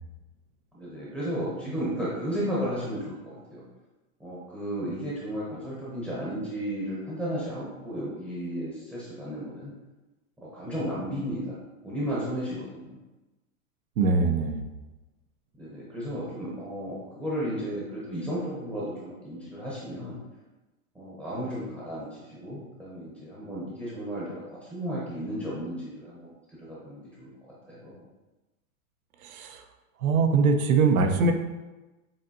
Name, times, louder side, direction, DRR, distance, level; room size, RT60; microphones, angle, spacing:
voice 1, 0.7-3.6 4.2-9.7 10.4-11.5 11.8-13.0 15.6-20.2 20.9-27.3 27.7-28.1, equal, 5° right, -8 dB, 0.7 m, -34 dB
voice 2, 14.0-14.6 29.2-29.6 30.0-31.3, right 4 dB, 85° right, 5 dB, 0.9 m, -22 dB
7.2 x 2.6 x 2.6 m, 1.1 s
supercardioid pair, 155°, 42 cm